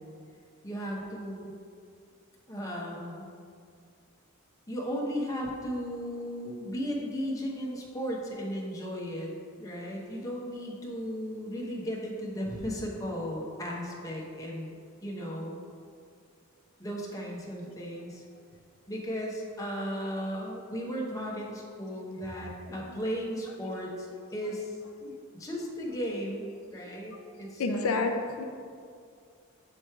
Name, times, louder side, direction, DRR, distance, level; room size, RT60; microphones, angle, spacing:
voice 1, 0.6-1.5 2.5-3.3 4.7-9.3 9.6-14.7 15.0-15.6 16.8-18.2 18.9-24.1 24.3-24.8 25.0-25.1 25.4-28.0, equal, 15° left, -3 dB, 0.9 m, -35 dB
voice 2, 26.9-27.2 27.6-28.4, left 3 dB, 85° left, 5 dB, 0.5 m, -31 dB
7.7 x 3.1 x 4.6 m, 2.2 s
head